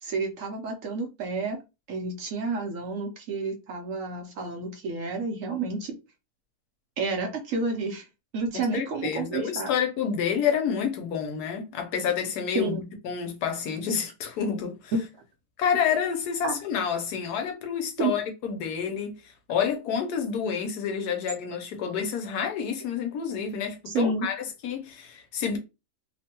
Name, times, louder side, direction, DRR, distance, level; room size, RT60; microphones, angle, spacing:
voice 1, 0.0-1.6 1.9-6.0 7.0-8.0 8.3-9.7 12.5-12.8 14.9-15.0 16.4-16.6 18.0-18.1 23.9-24.3, right 3 dB, 65° right, 0.9 m, -30 dB
voice 2, 8.5-14.9 15.6-25.6, left 7 dB, 80° left, 1.2 m, -29 dB
3.0 x 2.1 x 2.8 m
omnidirectional pair, 1.7 m